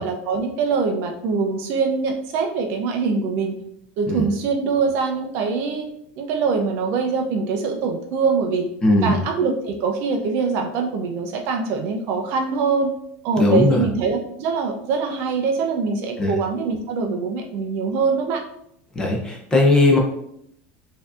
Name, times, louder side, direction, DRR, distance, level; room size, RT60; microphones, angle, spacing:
voice 1, 0.0-3.6 4.0-5.9 6.2-8.7 9.0-12.9 13.2-18.4, right 5 dB, 40° right, 4 dB, 0.4 m, -23 dB
voice 2, 8.8-9.2 13.4-13.8 16.2-16.4 18.9-20.0, left 2 dB, 10° left, -1 dB, 0.5 m, -18 dB
4.4 x 2.6 x 2.4 m, 0.73 s
cardioid pair, 180°, 6 cm